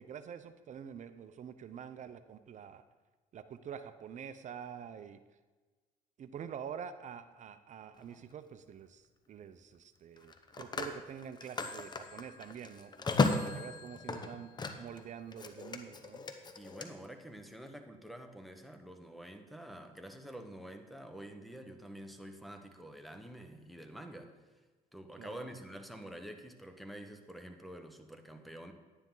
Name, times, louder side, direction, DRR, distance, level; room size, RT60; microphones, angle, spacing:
voice 1, 0.0-2.8 3.3-5.2 6.2-13.1 13.4-14.5 14.8-16.2 25.2-25.6, right 8 dB, 50° right, 11 dB, 0.7 m, -46 dB
Telephone, 8.0-8.2 10.2-15.0 15.3-16.9, left 3 dB, 25° left, 1.0 m, -35 dB
voice 2, 13.4-13.8 16.6-24.4 24.9-28.7, right 1 dB, ahead, 4 dB, 1.2 m, -48 dB
11.0 x 9.8 x 3.9 m, 1.3 s
cardioid pair, 95°, 16 cm